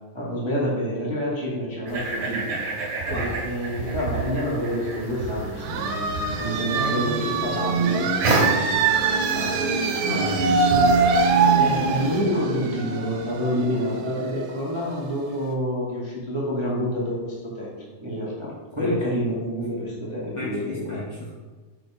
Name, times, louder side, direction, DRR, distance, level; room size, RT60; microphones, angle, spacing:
voice 1, 0.1-2.6 3.1-9.6 10.7-11.0 11.5-21.0, equal, 20° right, -7 dB, 0.7 m, -28 dB
sound 1, 1.9-12.2, right 3 dB, 60° right, 2.7 m, -31 dB
sound 2, 5.6-15.1, right 4 dB, 85° right, 2.5 m, -23 dB
voice 2, 8.2-8.5 10.0-10.9 18.8-19.2 20.3-21.3, left 2 dB, 65° left, -6 dB, 1.4 m, -33 dB
6.9 x 5.2 x 5.0 m, 1.4 s
omnidirectional pair, 4.0 m